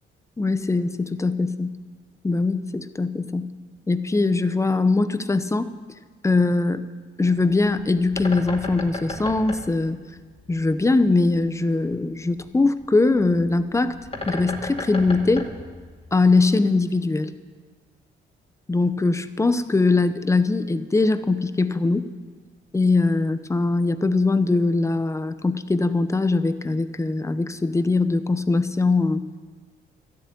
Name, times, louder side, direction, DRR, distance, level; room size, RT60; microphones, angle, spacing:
voice 1, 0.4-1.7 2.2-3.5 3.9-5.7 6.2-6.8 7.2-10.0 10.5-14.0 14.3-15.5 16.1-17.3 18.7-22.1 22.7-29.2, left 3 dB, 15° left, 12 dB, 0.8 m, -21 dB
Bird, 7.3-16.5, left 2 dB, 30° left, 2.3 m, -36 dB
13.0 x 7.7 x 9.8 m, 1.5 s
cardioid pair, 90°, 20 cm